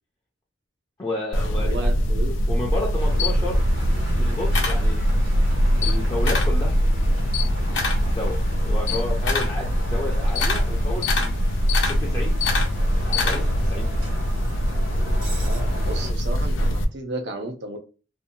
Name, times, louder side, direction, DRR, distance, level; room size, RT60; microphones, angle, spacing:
voice 1, 1.0-1.9 2.5-3.6 4.2-5.0 5.8-11.3 11.9-12.4 13.0-13.9, left 2 dB, 20° left, 0.4 m, -32 dB
sound 1, 1.3-16.8, equal, 90° left, 0.4 m, -22 dB
voice 2, 1.5-2.3 3.1-3.5 15.4-17.8, right 2 dB, 65° right, 0.6 m, -34 dB
Camera, 2.8-5.4 5.7-6.6 7.0-13.7, left 5 dB, 65° left, 0.7 m, -28 dB
Bus, 3.0-16.1, right 1 dB, 80° right, 1.2 m, -34 dB
2.7 x 2.1 x 2.6 m
head